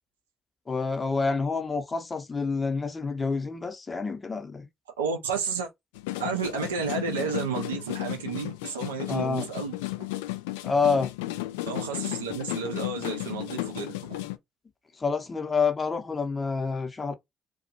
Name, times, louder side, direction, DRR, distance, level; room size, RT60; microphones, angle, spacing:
voice 1, 0.7-4.7 9.1-9.5 10.6-11.1 15.0-17.1, left 4 dB, 35° left, 0.8 m, -28 dB
voice 2, 5.0-5.7 6.2-10.1 11.7-14.2, right 6 dB, 85° right, 0.5 m, -32 dB
sound 1, 5.9-14.4, left 17 dB, 80° left, 0.3 m, -34 dB
2.4 x 2.3 x 2.7 m
hypercardioid pair, 45°, 0 cm